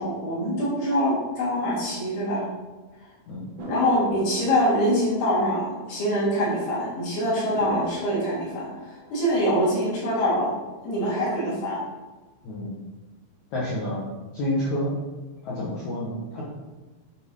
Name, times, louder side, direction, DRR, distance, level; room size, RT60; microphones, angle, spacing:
voice 1, 0.0-2.5 3.7-10.5 10.8-11.8, equal, 70° left, -6 dB, 5.0 m, -24 dB
sound 1, 3.6-6.6 6.9-7.0 7.5-10.5 10.9-11.5, equal, 60° right, 3.6 m, -40 dB
voice 2, 13.5-14.0 14.3-14.9 15.4-16.4, left 1 dB, 55° left, -7 dB, 2.6 m, -29 dB
9.6 x 7.4 x 3.9 m, 1.2 s
omnidirectional pair, 4.7 m